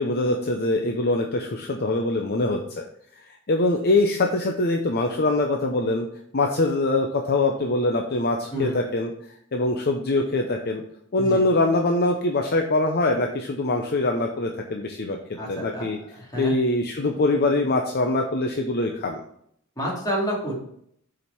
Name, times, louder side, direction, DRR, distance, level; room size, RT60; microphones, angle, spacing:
voice 1, 0.0-2.9 3.3-6.1 6.3-9.1 9.5-10.8 11.1-15.2 15.5-16.0 16.4-19.2, left 2 dB, 45° left, 3 dB, 0.7 m, -23 dB
voice 2, 15.4-16.5 19.8-20.5, equal, 20° left, -4 dB, 2.9 m, -29 dB
7.1 x 5.1 x 6.0 m, 0.69 s
head